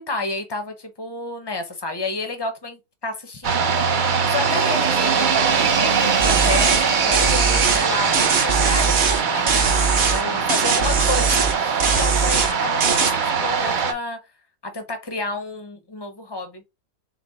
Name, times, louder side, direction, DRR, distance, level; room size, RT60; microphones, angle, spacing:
voice 1, 0.0-3.7 4.2-5.5 5.8-9.7 10.0-14.2 14.6-16.6, left 3 dB, 35° left, 0.4 m, -30 dB
sound 1, 3.4-13.9, right 6 dB, 75° right, 0.4 m, -21 dB
sound 2, 6.2-6.8 7.1-7.8 8.1-9.2 9.5-10.2 10.5-11.5 11.8-12.5 12.8-13.1, right 5 dB, 50° right, 0.9 m, -21 dB
5.8 x 2.1 x 3.9 m
omnidirectional pair, 1.7 m